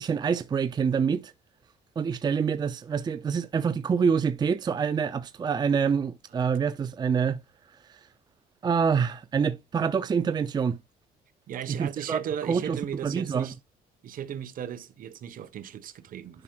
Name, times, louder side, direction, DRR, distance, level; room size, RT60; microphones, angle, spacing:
voice 1, 0.0-1.3 2.0-7.4 7.7-8.1 8.6-10.8 11.7-13.5, right 6 dB, 25° right, 0.5 m, -26 dB
voice 2, 11.5-13.5 14.0-16.4, right 9 dB, 55° right, 1.0 m, -36 dB
11.0 x 5.9 x 2.3 m
cardioid pair, 110°, 17 cm